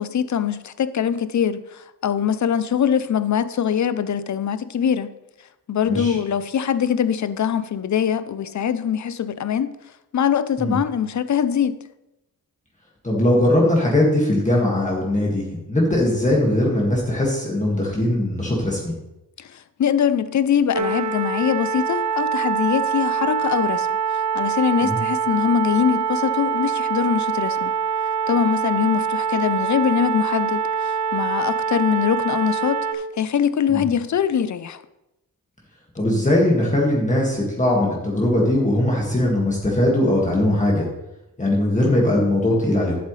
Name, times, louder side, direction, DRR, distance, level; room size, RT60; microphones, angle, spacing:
voice 1, 0.0-5.1 5.7-9.7 10.1-11.8 19.4-23.9 24.1-27.7 28.3-34.8, left 8 dB, 55° left, 0.6 m, -22 dB
voice 2, 5.9-6.2 10.6-10.8 13.0-18.9 24.8-25.0 33.7-33.8 35.9-40.9 41.4-43.0, left 1 dB, 20° left, 1.9 m, -20 dB
sound 1, 20.7-32.9, right 6 dB, 55° right, 0.7 m, -24 dB
11.5 x 7.9 x 3.2 m
wide cardioid pair, 135°, 35 cm